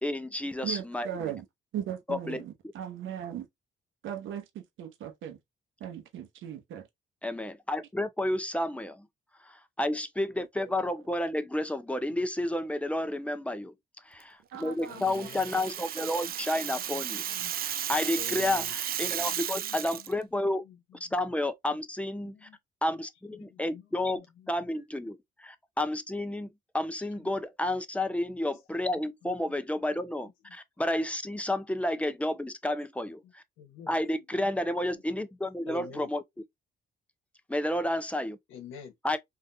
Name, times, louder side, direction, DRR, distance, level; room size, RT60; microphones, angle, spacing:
voice 1, 0.0-1.1 2.1-2.4 7.2-9.1 9.5-13.7 14.1-17.2 17.6-20.6 21.1-22.5 22.8-23.1 23.6-24.2 24.5-25.2 25.8-26.5 26.7-30.3 30.5-33.4 33.9-36.2 37.5-38.4 39.0-39.2, left 1 dB, 5° left, 0.5 m, -31 dB
voice 2, 0.6-1.4 1.7-3.5 4.0-5.4 5.8-6.9 14.5-15.6, right 10 dB, 80° right, 0.8 m, -38 dB
voice 3, 14.9-15.7 16.2-16.3 16.6-17.5 18.1-18.7 19.2-20.1 20.7-20.8 21.7-21.8 22.2-22.6 23.4-24.5 27.2-27.3 29.2-29.6 33.2-34.0 34.4-34.5 35.6-36.1 38.5-38.9, left 7 dB, 85° left, 1.0 m, -48 dB
Rattle (instrument), 14.9-20.1, right 10 dB, 50° right, 0.4 m, -34 dB
3.7 x 2.5 x 2.6 m
cardioid pair, 90°, 20 cm